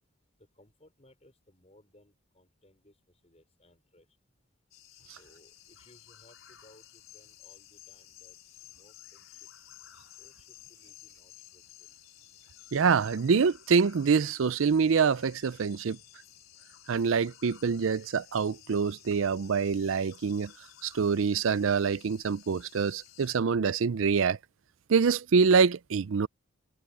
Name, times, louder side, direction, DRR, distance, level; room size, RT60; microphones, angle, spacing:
voice 1, 0.4-4.1 5.0-9.5 10.2-12.0, left 1 dB, 30° left, 4.9 m, -62 dB
sound 1, 4.7-23.4, left 12 dB, 80° left, 4.8 m, -54 dB
voice 2, 12.7-16.0 16.9-20.5 20.8-24.4 24.9-26.3, right 5 dB, 75° right, 0.5 m, -25 dB
head